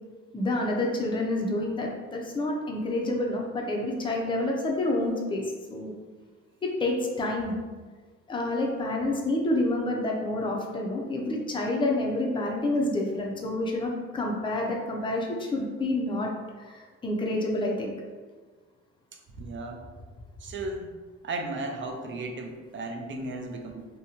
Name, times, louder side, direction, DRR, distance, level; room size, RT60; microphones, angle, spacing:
voice 1, 0.3-5.9 6.6-7.5 8.3-16.3 16.6-17.9, left 1 dB, 15° left, -1 dB, 0.5 m, -28 dB
voice 2, 19.1-19.8 20.4-20.9 21.2-23.9, right 2 dB, 40° right, 3 dB, 0.5 m, -35 dB
2.8 x 2.2 x 2.8 m, 1.4 s
cardioid pair, 90°, 30 cm